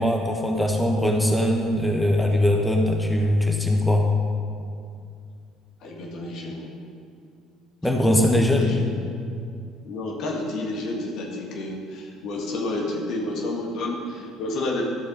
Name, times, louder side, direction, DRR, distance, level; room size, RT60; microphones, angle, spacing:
voice 1, 0.0-4.1 7.8-8.7, left 1 dB, 10° left, 2 dB, 1.3 m, -21 dB
voice 2, 5.8-6.7 8.2-8.8 9.8-14.8, left 2 dB, 55° left, 0 dB, 1.8 m, -30 dB
12.5 x 7.4 x 5.3 m, 2.4 s
figure-of-eight pair, 55°, 0 cm